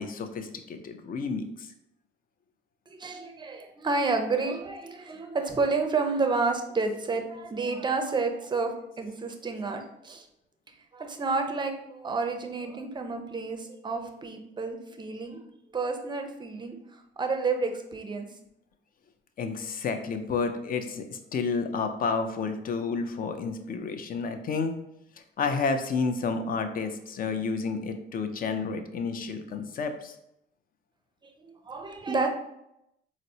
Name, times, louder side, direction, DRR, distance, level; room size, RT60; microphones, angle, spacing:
voice 1, 0.0-1.7 19.4-24.7 25.4-30.1, left 4 dB, 45° left, 7 dB, 0.4 m, -30 dB
voice 2, 2.9-10.3 10.9-15.4 15.7-16.8 17.2-18.3 31.4-32.3, right 4 dB, 25° right, 5 dB, 0.4 m, -30 dB
4.0 x 2.0 x 2.6 m, 0.82 s
cardioid pair, 90°, 20 cm